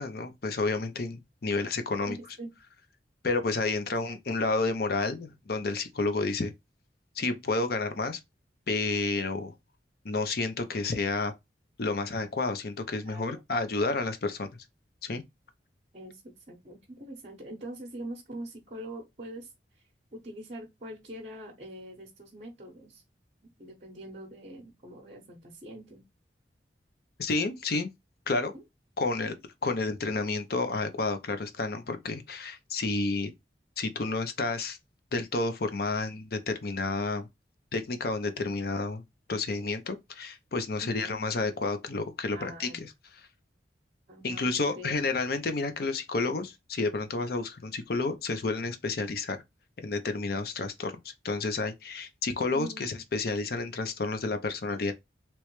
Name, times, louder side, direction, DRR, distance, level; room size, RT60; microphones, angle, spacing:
voice 1, 0.0-2.2 3.2-6.5 7.2-8.2 8.7-9.5 10.0-11.3 11.8-14.5 15.0-15.2 27.2-27.9 28.3-28.5 29.0-29.3 29.6-33.3 33.8-34.8 35.1-37.3 37.7-39.0 39.3-42.9 44.2-49.4 49.8-54.9, left 3 dB, 55° left, 0.6 m, -30 dB
voice 2, 2.1-2.5 4.0-4.2 13.0-13.4 15.9-16.2 16.5-19.8 20.1-23.0 23.6-26.0 28.5-28.6 29.2-29.3 40.8-41.1 42.3-42.8 44.1-44.9 52.5-52.8, right 1 dB, 40° right, 0.8 m, -43 dB
3.2 x 3.0 x 3.0 m
head